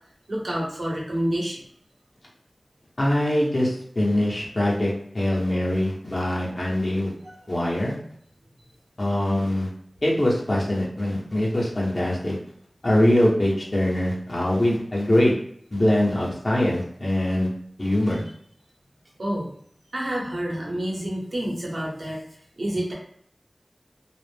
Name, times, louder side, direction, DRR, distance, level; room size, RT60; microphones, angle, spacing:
voice 1, 0.3-1.6 7.2-7.4 18.1-18.2 19.2-19.5 19.9-22.2 22.6-22.9, right 1 dB, 70° right, -3 dB, 0.9 m, -28 dB
voice 2, 3.0-7.1 7.5-8.0 9.0-9.7 10.0-12.4 12.8-15.3 15.7-17.5 17.8-18.2, left 1 dB, 45° left, -4 dB, 0.8 m, -23 dB
2.4 x 2.0 x 3.3 m, 0.66 s
wide cardioid pair, 60°, 0 cm